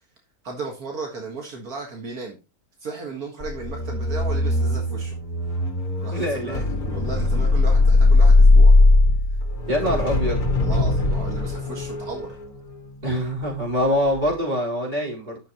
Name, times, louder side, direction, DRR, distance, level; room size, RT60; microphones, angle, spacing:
voice 1, 0.4-2.4 2.8-5.2 6.0-6.6 6.9-8.7 9.9-10.0 10.6-12.3, right 4 dB, 75° right, 1 dB, 2.1 m, -35 dB
sound 1, 3.4-13.7 14.1-14.3, left 2 dB, 60° left, 1.9 m, -19 dB
voice 2, 6.1-6.6 9.7-10.4 13.0-15.4, equal, 30° right, -2 dB, 4.4 m, -24 dB
11.5 x 6.6 x 2.9 m, 0.28 s
omnidirectional pair, 1.6 m